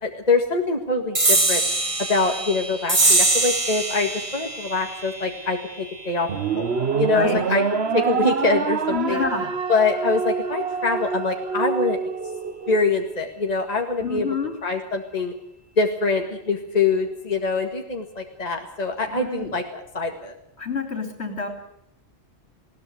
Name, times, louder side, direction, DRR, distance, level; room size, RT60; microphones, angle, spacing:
voice 1, 0.0-1.6 2.1-6.3 6.6-6.7 7.0-7.6 7.9-9.2 9.7-12.0 12.7-14.3 14.6-15.3 15.8-20.3, left 3 dB, 35° left, 3 dB, 2.1 m, -24 dB
sound 1, 1.1-8.0, right 2 dB, 30° right, 1.5 m, -24 dB
sound 2, 6.3-12.8, right 6 dB, 65° right, 1.3 m, -26 dB
voice 2, 8.9-9.5 14.0-14.5 19.0-19.5 20.6-21.5, left 4 dB, 75° left, 5 dB, 4.0 m, -28 dB
20.5 x 17.5 x 8.0 m, 0.75 s
omnidirectional pair, 1.1 m